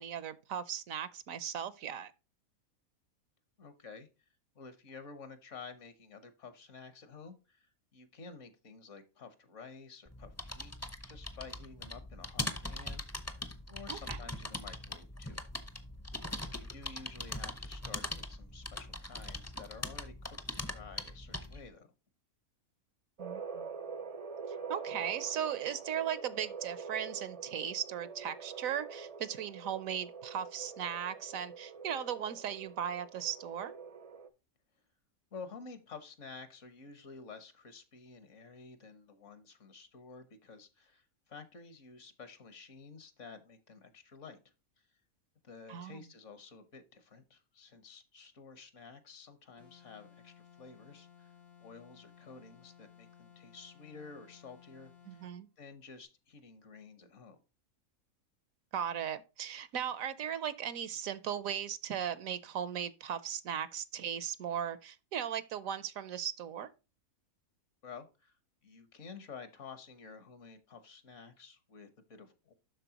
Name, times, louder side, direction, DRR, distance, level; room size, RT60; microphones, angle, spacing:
voice 1, 0.0-2.1 13.9-14.2 23.2-23.7 24.5-33.7 45.7-46.0 55.1-55.5 58.7-66.7, right 9 dB, 70° right, 1.1 m, -37 dB
voice 2, 3.6-4.1 4.5-15.4 16.5-21.9 35.3-44.4 45.4-51.3 51.6-55.2 55.6-57.4 67.8-68.4 68.6-72.5, left 5 dB, 60° left, 1.4 m, -51 dB
sound 1, 10.0-21.7, left 1 dB, 15° left, 0.6 m, -41 dB
sound 2, 23.2-34.3, right 5 dB, 40° right, 0.5 m, -45 dB
sound 3, 49.6-55.4, left 8 dB, 90° left, 2.8 m, -59 dB
12.0 x 4.2 x 2.8 m
omnidirectional pair, 1.5 m